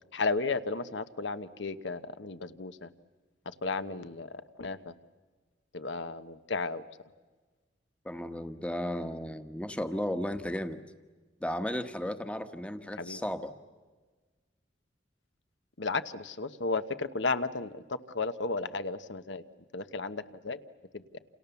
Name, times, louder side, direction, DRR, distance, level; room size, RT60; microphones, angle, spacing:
voice 1, 0.1-2.9 3.5-4.3 4.6-4.9 5.7-6.8 13.0-13.2 15.8-19.4 19.7-20.6 20.9-21.0, left 3 dB, 75° left, 12 dB, 1.1 m, -34 dB
voice 2, 8.0-10.8 11.4-13.5, equal, 5° left, 9 dB, 1.1 m, -34 dB
29.0 x 28.0 x 7.1 m, 1.4 s
head